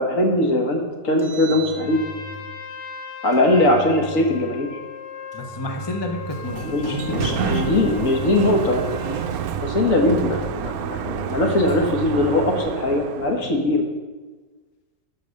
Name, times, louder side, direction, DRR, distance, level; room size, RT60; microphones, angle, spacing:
voice 1, 0.0-2.0 3.2-4.8 6.6-8.9 9.6-13.9, left 1 dB, 50° left, 2 dB, 1.6 m, -21 dB
Engine, 1.0-2.5 3.3-4.5 5.3-6.6 7.3-8.6 9.3-10.6 11.3-12.5, right 3 dB, 20° right, 1.9 m, -38 dB
Trumpet, 1.7-9.4, left 4 dB, 80° left, 1.6 m, -38 dB
voice 2, 5.3-8.1 13.4-13.6, left 2 dB, 25° left, 3 dB, 0.6 m, -30 dB
Sliding door, 6.1-13.5, right 8 dB, 70° right, 0.9 m, -29 dB
12.0 x 4.9 x 6.4 m, 1.3 s
omnidirectional pair, 1.9 m